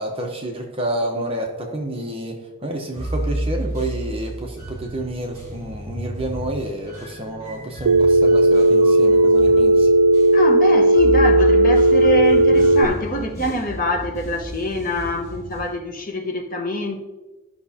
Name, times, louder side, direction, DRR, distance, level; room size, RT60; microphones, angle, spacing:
voice 1, 0.0-9.9, right 1 dB, 25° right, 0.8 m, -29 dB
sound 1, 2.9-15.7, right 1 dB, 15° left, 2.3 m, -31 dB
Telephone, 7.9-12.9, right 2 dB, 75° right, 0.3 m, -14 dB
voice 2, 10.3-17.0, left 1 dB, 45° left, 1.0 m, -25 dB
13.5 x 5.9 x 2.8 m
head